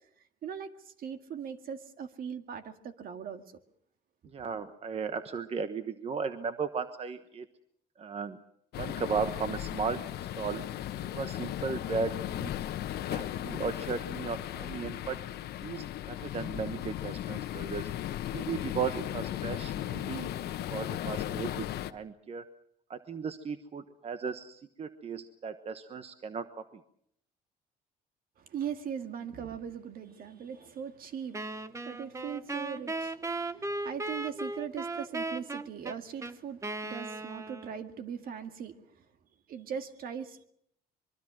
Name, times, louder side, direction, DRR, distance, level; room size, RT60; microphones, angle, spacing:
voice 1, 0.4-3.4 28.4-39.1 39.5-40.4, right 8 dB, 60° right, 8 dB, 2.0 m, -40 dB
voice 2, 4.3-7.5 8.0-8.4 8.8-10.7 11.1-12.5 13.1-15.2 15.6-17.9 18.3-20.3 20.7-22.5 22.9-26.5, right 5 dB, 35° right, 10 dB, 1.2 m, -36 dB
sound 1, 8.7-21.9, left 12 dB, 70° left, 1.2 m, -36 dB
Wind instrument woodwind instrument, 31.3-37.9, right 2 dB, 20° right, 1.1 m, -37 dB
24.0 x 23.0 x 6.3 m, 0.69 s
cardioid pair, 110°, 17 cm